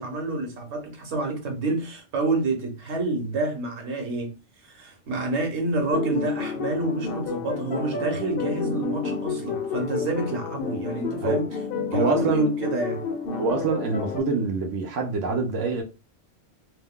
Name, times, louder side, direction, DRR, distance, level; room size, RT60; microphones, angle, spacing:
voice 1, 0.0-4.3 4.6-11.5 11.9-13.0, right 2 dB, 65° right, 1.1 m, -28 dB
sound 1, 5.9-14.2, left 5 dB, 60° left, 0.6 m, -30 dB
voice 2, 11.9-12.5 13.3-15.8, right 4 dB, 85° right, 1.0 m, -25 dB
2.6 x 2.2 x 3.5 m
omnidirectional pair, 1.3 m